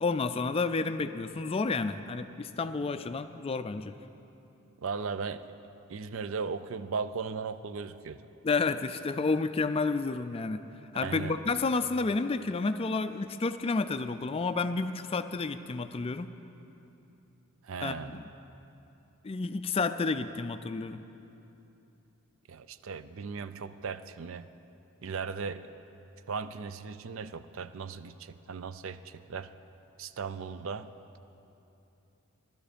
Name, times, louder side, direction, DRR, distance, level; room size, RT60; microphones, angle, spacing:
voice 1, 0.0-4.0 8.4-10.6 10.9-16.3 17.8-18.2 19.2-21.0, left 3 dB, 25° left, 10 dB, 0.3 m, -30 dB
voice 2, 4.8-5.4 5.9-8.2 11.0-11.4 17.6-18.2 22.5-24.5 25.0-25.7 26.3-29.5 30.0-30.9, right 5 dB, 60° right, 12 dB, 0.4 m, -37 dB
16.0 x 12.0 x 5.1 m, 2.9 s
head